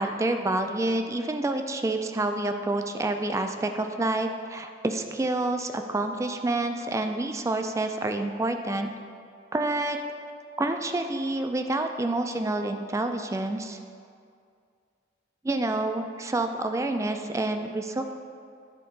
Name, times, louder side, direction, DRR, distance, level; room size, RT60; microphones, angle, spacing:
voice 1, 0.0-8.9 9.5-10.0 10.6-13.8 15.4-18.0, right 2 dB, 15° right, 6 dB, 0.3 m, -28 dB
10.5 x 3.7 x 3.9 m, 2.3 s
head